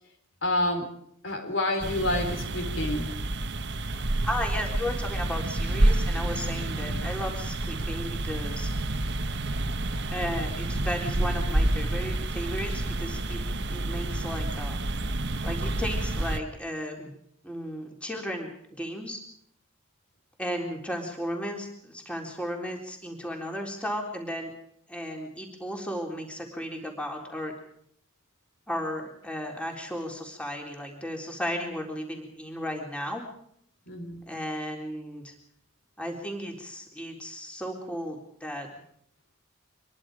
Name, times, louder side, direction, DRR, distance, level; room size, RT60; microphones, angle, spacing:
voice 1, 0.4-0.9 1.2-3.2 6.7-6.9 33.9-34.2, left 1 dB, 60° left, 6 dB, 4.3 m, -29 dB
sound 1, 1.8-16.4, right 1 dB, 55° right, 1.4 m, -29 dB
voice 2, 4.2-8.7 10.1-13.4 13.7-14.8 15.4-17.1 17.4-19.2 20.4-24.5 24.9-27.5 28.7-33.2 34.3-35.3 36.0-38.7, equal, 5° left, 1 dB, 3.9 m, -34 dB
25.5 x 22.5 x 5.1 m, 0.70 s
head